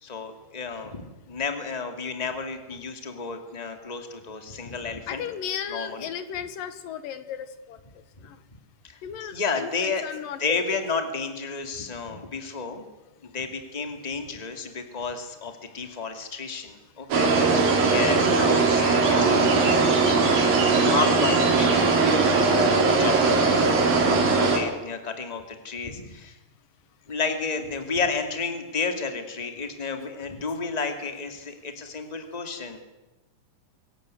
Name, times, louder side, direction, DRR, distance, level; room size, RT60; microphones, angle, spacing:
voice 1, 0.0-5.3 5.7-6.1 8.2-8.3 8.8-10.0 10.4-12.8 13.2-19.8 20.7-22.3 22.7-23.8 24.3-26.4 27.1-32.8, left 4 dB, 15° left, 6 dB, 1.6 m, -32 dB
voice 2, 5.1-7.8 8.3-8.4 9.0-10.6, left 8 dB, 70° left, 12 dB, 2.6 m, -35 dB
sound 1, 17.1-24.6, right 4 dB, 60° right, 5.1 m, -20 dB
23.5 x 17.0 x 9.5 m, 1.0 s
omnidirectional pair, 4.6 m